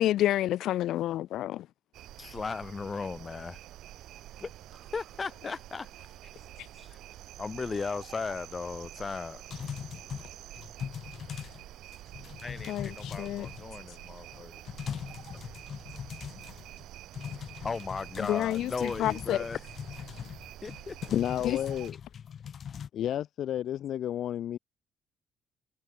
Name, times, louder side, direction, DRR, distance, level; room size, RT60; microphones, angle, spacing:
voice 1, 0.0-1.7 12.7-13.5 18.2-19.4 21.4-21.6, left 13 dB, 75° left, 0.3 m, -29 dB
sound 1, 1.9-21.9, right 13 dB, 80° right, 1.4 m, -48 dB
voice 2, 2.2-3.6 4.4-4.5 4.9-5.9 6.8-6.9 7.4-9.4 12.4-14.6 17.6-19.6 20.6-21.0, left 4 dB, 25° left, 1.2 m, -36 dB
sound 2, 9.5-11.7 11.9-13.9 14.3-14.4 14.7-16.8 17.1-22.9, left 8 dB, 45° left, 2.1 m, -41 dB
voice 3, 21.0-22.0 22.9-24.6, left 11 dB, 60° left, 2.6 m, -31 dB
cardioid pair, 155°, 0 cm